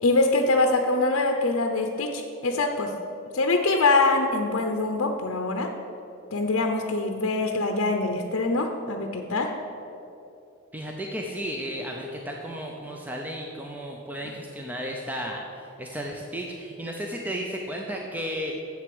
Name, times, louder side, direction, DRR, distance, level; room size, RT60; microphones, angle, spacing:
voice 1, 0.0-2.9 3.3-5.7 6.3-9.5 14.2-14.3, left 2 dB, 60° left, 3 dB, 0.7 m, -24 dB
voice 2, 10.7-18.5, equal, 10° right, 0 dB, 0.6 m, -34 dB
7.9 x 7.3 x 7.8 m, 2.8 s
head